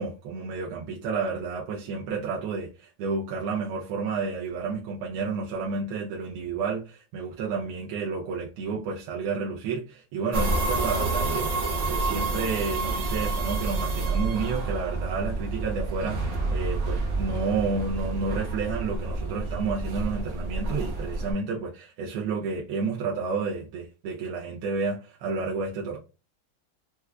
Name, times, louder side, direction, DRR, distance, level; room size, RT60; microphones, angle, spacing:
voice 1, 0.0-11.5 11.9-26.0, right 4 dB, 90° right, 1.5 m, -31 dB
sound 1, 10.3-21.3, right 3 dB, 60° right, 0.7 m, -29 dB
4.6 x 2.2 x 2.2 m
omnidirectional pair, 2.3 m